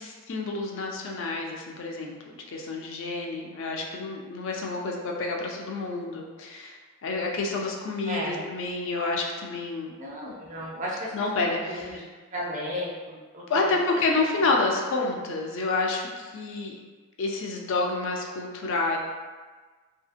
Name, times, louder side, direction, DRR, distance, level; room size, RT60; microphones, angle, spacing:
voice 1, 0.0-9.9 11.1-11.9 13.5-16.8 17.2-19.0, left 3 dB, 60° left, 1 dB, 0.4 m, -29 dB
voice 2, 8.1-8.4 10.0-11.2 11.7-12.0 12.3-13.7 14.1-14.2, equal, 35° right, -4 dB, 0.6 m, -34 dB
2.7 x 2.7 x 2.4 m, 1.4 s
head